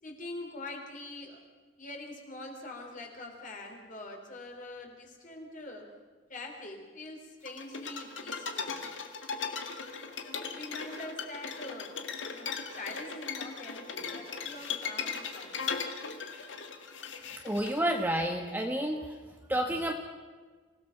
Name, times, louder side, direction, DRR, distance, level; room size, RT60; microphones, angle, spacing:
voice 1, 0.0-1.4 1.8-5.9 6.3-8.8 10.3-11.9 12.2-15.5, left 2 dB, 45° left, 1 dB, 4.0 m, -44 dB
sound 1, 7.5-17.9, left 6 dB, 80° left, 2.0 m, -38 dB
voice 2, 17.4-19.1 19.5-19.9, right 1 dB, 10° right, 2 dB, 1.3 m, -29 dB
26.5 x 17.0 x 6.0 m, 1.4 s
head